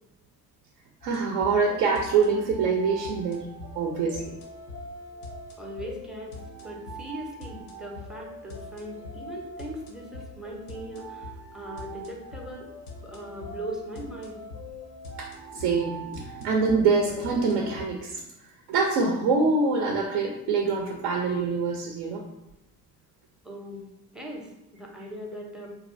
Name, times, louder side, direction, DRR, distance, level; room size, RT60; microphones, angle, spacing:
sound 1, 1.0-17.8, equal, 80° left, 0.6 m, -42 dB
voice 1, 1.0-3.5 3.8-4.4 15.2-18.2 18.7-22.2, right 4 dB, 65° right, 1 dB, 0.5 m, -25 dB
voice 2, 5.6-6.4 6.6-12.7 13.0-14.4 23.4-23.9 24.1-25.8, right 1 dB, ahead, 0 dB, 0.5 m, -39 dB
2.7 x 2.3 x 2.5 m, 0.89 s
hypercardioid pair, 50°, 46 cm